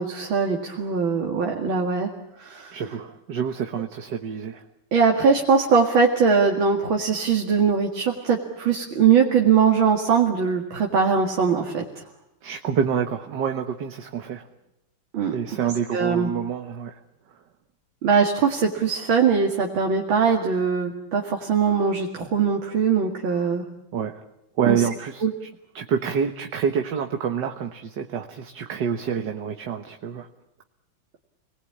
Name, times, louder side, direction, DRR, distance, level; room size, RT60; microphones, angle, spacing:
voice 1, 0.0-2.1 2.4-2.8 4.9-11.8 15.1-15.4 15.9-16.3 18.0-23.6 24.6-24.8 25.2-25.3, right 6 dB, 80° right, 1 dB, 2.9 m, -21 dB
voice 2, 2.7-4.6 12.4-14.4 15.3-16.9 23.9-24.2 24.6-25.2 25.8-30.3, right 7 dB, 60° right, 4 dB, 1.8 m, -27 dB
29.5 x 20.5 x 8.6 m, 0.88 s
omnidirectional pair, 2.2 m